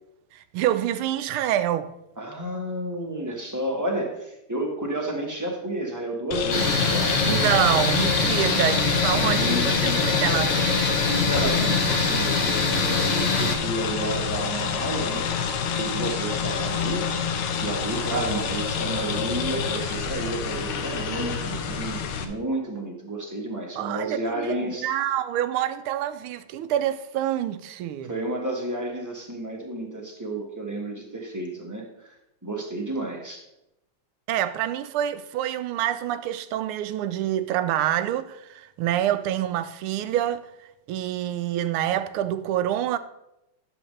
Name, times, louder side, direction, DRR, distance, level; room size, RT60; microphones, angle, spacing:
voice 1, 0.3-1.9 7.2-10.9 23.8-24.5 24.8-28.1 34.3-40.4 40.9-43.0, right 11 dB, 80° right, 1.4 m, -26 dB
voice 2, 2.2-7.2 8.2-8.4 9.0-10.1 11.1-15.4 15.8-17.1 17.6-24.9 28.0-32.1 32.4-33.4, right 1 dB, 10° right, 1.0 m, -31 dB
sound 1, 6.3-22.2, left 6 dB, 80° left, 1.7 m, -28 dB
sound 2, 6.5-13.6, left 3 dB, 50° left, 0.7 m, -24 dB
10.5 x 7.3 x 3.2 m
omnidirectional pair, 2.4 m